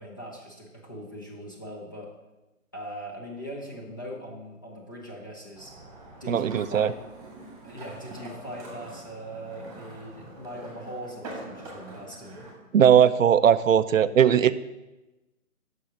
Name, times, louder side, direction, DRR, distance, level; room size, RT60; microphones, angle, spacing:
voice 1, 0.0-2.1 2.7-5.7 6.2-7.0 7.6-12.4, right 1 dB, 15° left, -2 dB, 0.6 m, -40 dB
sound 1, 5.5-12.5, right 1 dB, 10° right, 1.5 m, -44 dB
voice 2, 6.3-6.9 12.7-14.5, right 9 dB, 65° right, 14 dB, 0.5 m, -19 dB
7.3 x 6.1 x 5.9 m, 1.1 s
figure-of-eight pair, 150°, 43 cm